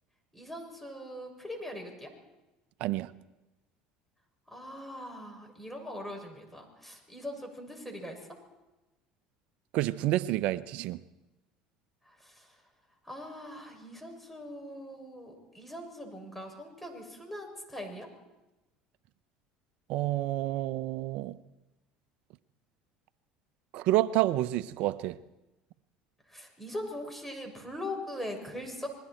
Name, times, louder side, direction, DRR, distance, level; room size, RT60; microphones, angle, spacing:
voice 1, 0.3-2.1 4.5-8.4 12.0-12.5 13.0-18.1 26.3-28.9, left 1 dB, 5° left, 6.9 m, -41 dB
voice 2, 2.8-3.1 9.7-11.0 19.9-21.4 23.7-25.2, right 15 dB, 65° right, 0.8 m, -29 dB
27.0 x 21.5 x 4.5 m
hypercardioid pair, 80°, 2 cm